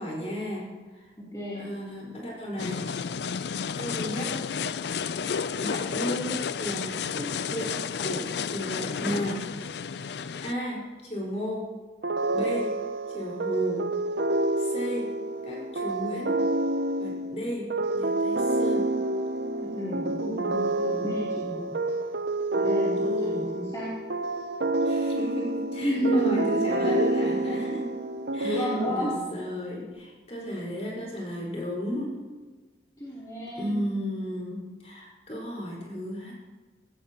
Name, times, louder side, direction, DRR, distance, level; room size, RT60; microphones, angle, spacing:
voice 1, 0.0-1.1 1.5-2.9 3.8-4.4 5.6-9.5 10.4-11.7 12.3-12.8 13.1-13.9 14.6-15.1 15.4-16.4 17.0-18.9 22.9-23.6 24.8-27.9 28.3-32.2 33.5-36.3, equal, 35° left, -4 dB, 5.0 m, -34 dB
voice 2, 1.2-1.7 19.7-21.7 22.5-23.9 25.8-26.8 28.4-29.2 33.0-33.8, equal, 20° left, -10 dB, 3.4 m, -30 dB
sound 1, 2.6-10.5, left 6 dB, 65° left, 0.4 m, -32 dB
sound 2, 12.0-29.2, right 2 dB, 65° right, 0.7 m, -28 dB
18.5 x 16.0 x 3.0 m, 1.3 s
head